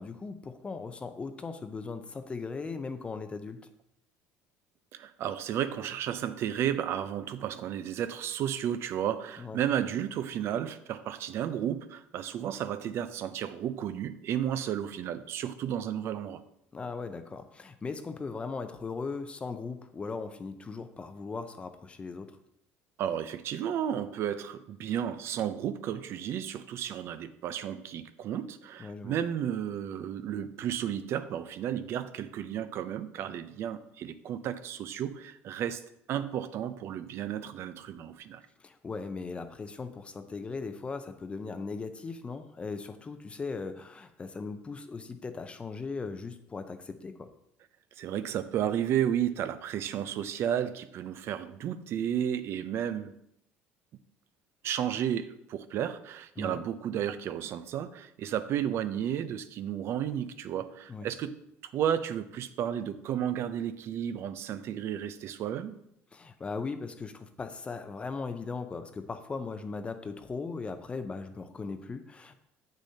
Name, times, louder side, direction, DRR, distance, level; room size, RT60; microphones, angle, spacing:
voice 1, 0.0-3.6 9.4-9.6 16.7-22.4 28.8-29.2 38.6-47.3 56.4-56.6 60.9-61.1 66.1-72.3, left 4 dB, 20° left, 8 dB, 0.5 m, -38 dB
voice 2, 4.9-16.4 23.0-35.8 36.1-38.4 48.0-53.1 54.6-61.4 61.7-65.8, right 10 dB, 55° right, 12 dB, 0.5 m, -33 dB
8.3 x 6.4 x 2.8 m, 0.77 s
cardioid pair, 115°, 5 cm